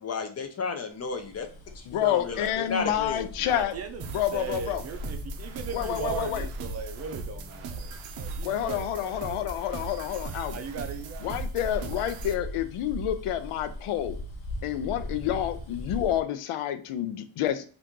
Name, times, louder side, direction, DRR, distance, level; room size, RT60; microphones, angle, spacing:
voice 1, 0.0-3.3 3.5-3.7, left 5 dB, 35° left, 0.4 m, -33 dB
Bus, 1.1-16.2, left 1 dB, 60° left, 0.9 m, -40 dB
voice 2, 1.9-3.7 4.1-4.8 5.7-6.5 8.4-10.6 11.2-14.2 14.6-17.6, left 11 dB, 85° left, 0.6 m, -29 dB
voice 3, 3.4-4.1 4.3-9.2 10.5-11.3, right 6 dB, 35° right, 0.5 m, -38 dB
sound 1, 4.0-12.3, right 6 dB, 80° right, 0.6 m, -40 dB
2.9 x 2.5 x 3.5 m
wide cardioid pair, 140°, 50 cm